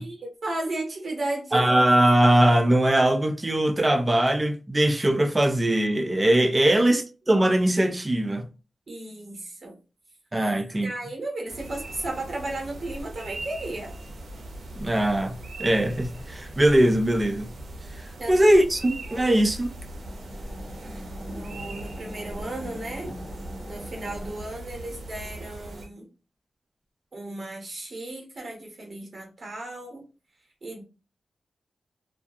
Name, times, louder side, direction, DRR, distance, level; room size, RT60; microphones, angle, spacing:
voice 1, 0.0-1.7 6.6-6.9 8.9-9.8 10.8-13.9 18.2-18.4 19.1-19.4 21.2-23.1 23.7-26.1 27.1-30.0 30.6-30.8, right 2 dB, 50° right, 0.9 m, -34 dB
voice 2, 1.5-8.5 10.3-10.9 14.8-17.5 17.9-19.7, right 1 dB, 25° right, 0.4 m, -21 dB
sound 1, 11.5-25.9, right 1 dB, 80° right, 0.5 m, -40 dB
sound 2, 19.7-24.4, equal, 10° left, 0.8 m, -42 dB
2.3 x 2.1 x 2.6 m
wide cardioid pair, 80°, 0 cm